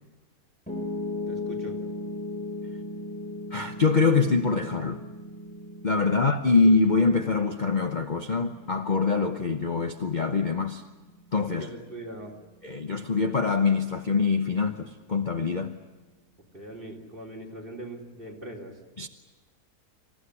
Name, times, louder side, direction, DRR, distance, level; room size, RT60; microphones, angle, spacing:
Piano, 0.7-12.8, left 2 dB, 5° left, 4.4 m, -38 dB
voice 1, 1.3-1.8 11.5-12.4 16.5-18.8, right 1 dB, 35° right, 3.9 m, -41 dB
voice 2, 3.5-5.0 5.8-10.8 11.3-11.7 12.6-15.8 19.0-19.1, left 4 dB, 35° left, 0.9 m, -24 dB
27.5 x 15.5 x 9.8 m
omnidirectional pair, 1.7 m